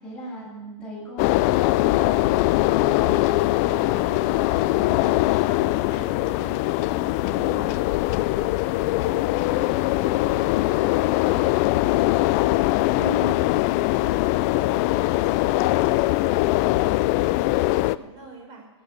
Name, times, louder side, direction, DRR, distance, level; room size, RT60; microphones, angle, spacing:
voice 1, 0.0-5.1 5.4-7.7 12.9-13.3, equal, 5° left, -7 dB, 7.1 m, -38 dB
sound 1, 1.2-18.0, left 18 dB, 30° left, 0.4 m, -21 dB
voice 2, 2.7-3.1 8.2-12.5 13.0-18.7, right 3 dB, 30° right, 2 dB, 5.1 m, -47 dB
17.5 x 9.1 x 8.7 m, 1.2 s
hypercardioid pair, 140°, 16 cm